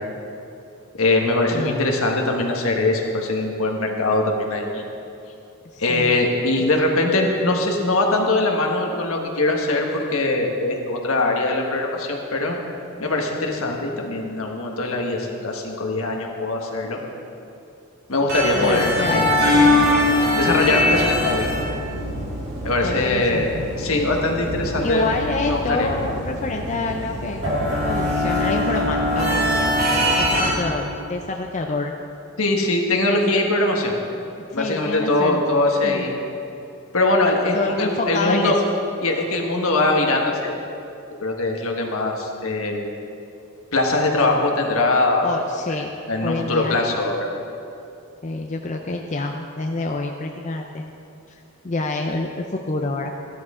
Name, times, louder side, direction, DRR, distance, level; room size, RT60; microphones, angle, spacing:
voice 1, 0.9-4.8 5.8-12.5 13.0-17.0 18.1-19.6 20.4-21.5 22.6-23.5 23.8-25.1 25.5-25.9 30.2-30.3 32.4-34.0 34.5-36.1 36.9-38.6 39.0-40.5 41.2-42.8 43.7-45.3 46.1-47.3, left 2 dB, 70° left, 1 dB, 1.5 m, -22 dB
voice 2, 1.5-1.9 5.7-6.2 6.6-6.7 18.6-19.8 22.8-23.6 24.8-31.9 34.5-35.4 35.8-36.1 37.5-38.5 45.2-45.9 46.2-46.7 48.2-50.9 51.6-53.1, left 3 dB, 30° left, 3 dB, 0.5 m, -27 dB
sound 1, 18.3-30.5, left 1 dB, 45° right, 2.5 m, -22 dB
14.0 x 12.5 x 3.7 m, 2.7 s
head